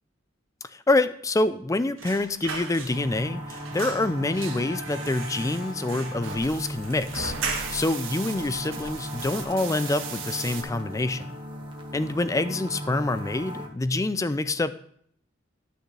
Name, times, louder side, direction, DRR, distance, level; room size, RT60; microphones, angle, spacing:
voice 1, 0.7-11.4 11.9-14.7, left 2 dB, 15° left, 13 dB, 0.4 m, -26 dB
sound 1, 2.0-3.2 3.5-8.0 8.4-8.5 8.8-9.6 9.9-10.1 10.4-11.1 11.4-11.6, right 4 dB, 90° right, 1.4 m, -37 dB
sound 2, 2.9-13.7, equal, 25° right, 1.4 m, -37 dB
sound 3, 5.1-10.6, right 6 dB, 70° right, 1.6 m, -40 dB
12.0 x 6.3 x 3.3 m, 0.64 s
head